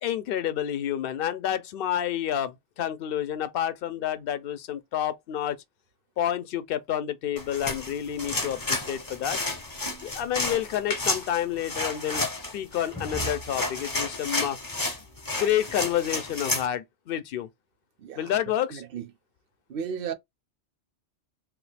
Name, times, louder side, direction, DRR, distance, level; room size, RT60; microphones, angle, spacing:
voice 1, 0.0-5.6 6.2-9.4 10.0-12.2 12.5-14.6 15.4-17.5 18.2-18.8, left 10 dB, 60° left, 0.7 m, -29 dB
sound 1, 7.4-16.7, left 2 dB, 20° left, 0.6 m, -31 dB
voice 2, 18.0-18.3 18.7-19.1 19.7-20.1, right 7 dB, 60° right, 0.7 m, -34 dB
3.4 x 2.4 x 3.3 m
omnidirectional pair, 1.2 m